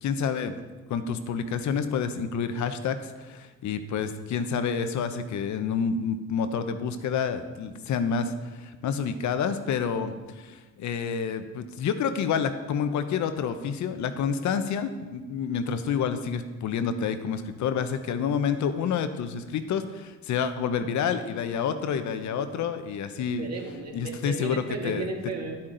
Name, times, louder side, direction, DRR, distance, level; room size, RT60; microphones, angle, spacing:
voice 1, 0.0-0.5 0.9-23.5 23.9-25.1, left 6 dB, 70° left, 9 dB, 0.8 m, -29 dB
voice 2, 23.4-25.7, right 3 dB, 55° right, 2 dB, 1.7 m, -34 dB
9.6 x 8.6 x 3.9 m, 1.3 s
cardioid pair, 90°, 30 cm